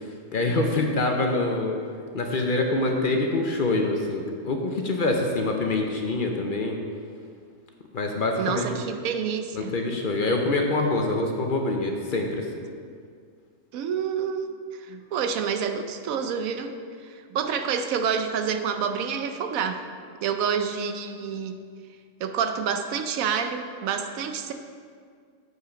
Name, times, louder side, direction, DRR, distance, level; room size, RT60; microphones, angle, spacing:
voice 1, 0.3-1.8 2.1-6.8 7.9-8.7 9.5-12.4, left 2 dB, 50° left, 2 dB, 0.7 m, -25 dB
voice 2, 8.4-9.7 13.7-14.5 14.9-16.7 17.1-19.8 20.2-21.6 22.2-24.5, right 7 dB, 80° right, 7 dB, 1.0 m, -28 dB
7.8 x 5.6 x 5.0 m, 2.1 s
omnidirectional pair, 1.4 m